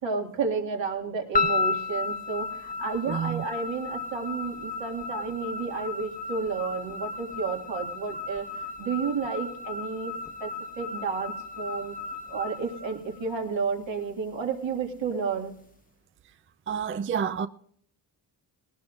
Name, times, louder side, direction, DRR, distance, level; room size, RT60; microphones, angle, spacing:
voice 1, 0.0-10.1 10.4-10.5 10.8-11.9 12.3-15.5, right 5 dB, 70° right, 2.2 m, -31 dB
sound 1, 1.3-13.6, left 4 dB, 20° left, 1.0 m, -33 dB
voice 2, 3.1-3.4 16.7-17.5, right 7 dB, 30° right, 0.4 m, -29 dB
19.5 x 17.5 x 2.5 m
cardioid pair, 65°, 47 cm